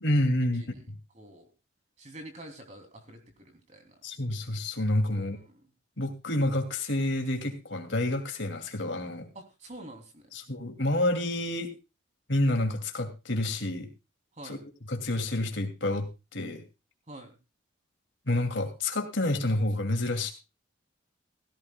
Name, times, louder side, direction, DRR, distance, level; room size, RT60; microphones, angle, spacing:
voice 1, 0.0-1.0 4.0-5.4 6.0-9.3 10.3-11.7 12.3-13.9 14.4-14.6 14.9-16.6 18.3-20.3, left 1 dB, 65° left, 5 dB, 2.6 m, -29 dB
voice 2, 1.1-1.5 2.0-3.9 5.1-5.6 9.3-10.2 14.4-14.7 17.1-17.4, right 1 dB, 35° right, 4 dB, 3.1 m, -47 dB
17.0 x 16.0 x 2.3 m, 0.28 s
head